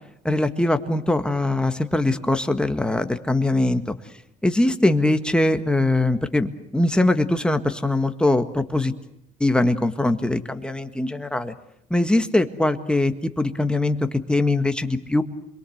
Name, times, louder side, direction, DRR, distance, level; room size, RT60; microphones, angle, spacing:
voice 1, 0.2-3.9 4.4-8.9 9.4-11.5 11.9-15.2, left 2 dB, 5° left, 8 dB, 1.7 m, -22 dB
27.0 x 22.5 x 7.9 m, 0.77 s
cardioid pair, 110°, 17 cm